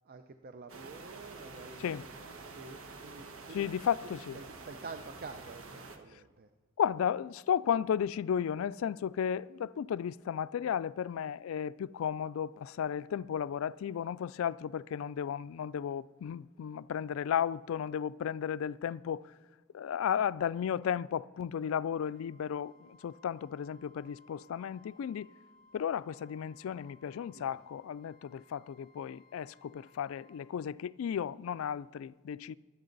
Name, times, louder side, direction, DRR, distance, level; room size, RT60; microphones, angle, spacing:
voice 1, 0.0-1.9 2.5-3.7 4.3-6.5 27.3-27.6, right 4 dB, 45° right, 0.6 m, -48 dB
sound 1, 0.7-6.0, right 3 dB, 75° right, 1.3 m, -48 dB
voice 2, 3.5-4.4 6.8-19.3 19.7-25.3 25.7-32.5, left 8 dB, 70° left, 0.3 m, -34 dB
Wind instrument woodwind instrument, 21.9-30.5, left 2 dB, ahead, 1.2 m, -63 dB
23.0 x 8.4 x 4.0 m
head